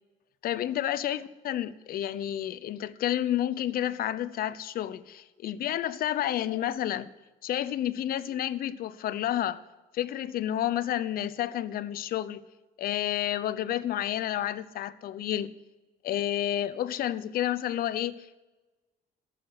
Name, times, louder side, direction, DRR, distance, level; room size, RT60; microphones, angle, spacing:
voice 1, 0.4-7.1 7.4-9.6 9.9-12.4 12.8-15.5 16.0-18.4, left 12 dB, 60° left, 0.7 m, -30 dB
14.5 x 6.6 x 7.7 m
cardioid pair, 110°, 17 cm